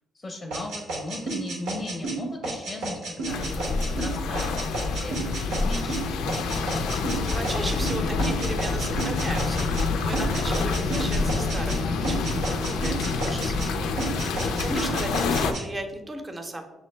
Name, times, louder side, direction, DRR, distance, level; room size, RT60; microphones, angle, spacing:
voice 1, 0.1-6.6 14.4-14.8, left 1 dB, 20° left, 2 dB, 0.5 m, -38 dB
sound 1, 0.5-9.9 10.1-11.8 12.0-13.7 14.0-15.6, right 2 dB, 90° right, 0.9 m, -32 dB
sound 2, 3.3-15.5, left 4 dB, 90° left, 0.3 m, -27 dB
sound 3, 5.7-15.4, right 2 dB, 70° right, 0.5 m, -40 dB
voice 2, 7.3-14.0 14.3-16.6, right 1 dB, 25° right, 5 dB, 0.6 m, -36 dB
6.1 x 2.0 x 3.2 m, 1.1 s
cardioid pair, 90°, 0 cm